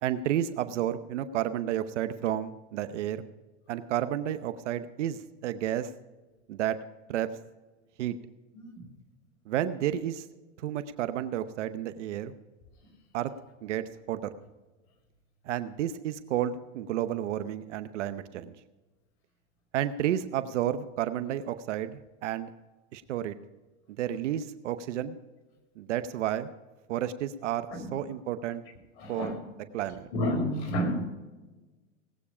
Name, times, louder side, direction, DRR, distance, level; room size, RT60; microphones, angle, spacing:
voice 1, 0.0-3.2 3.7-5.9 6.5-6.8 7.1-7.3 8.0-8.2 9.5-10.3 10.6-12.3 13.1-13.3 13.6-14.3 15.5-18.6 19.7-22.5 22.9-23.4 24.0-25.2 25.8-26.5 26.9-28.6 29.1-29.3 29.7-30.1, right 11 dB, 85° right, 12 dB, 0.9 m, -31 dB
voice 2, 8.5-8.9 12.8-12.9 27.7-27.9 29.0-29.4 29.8-31.0, equal, 65° left, 2 dB, 4.9 m, -31 dB
18.5 x 8.5 x 4.9 m, 1.2 s
supercardioid pair, 120°, 35 cm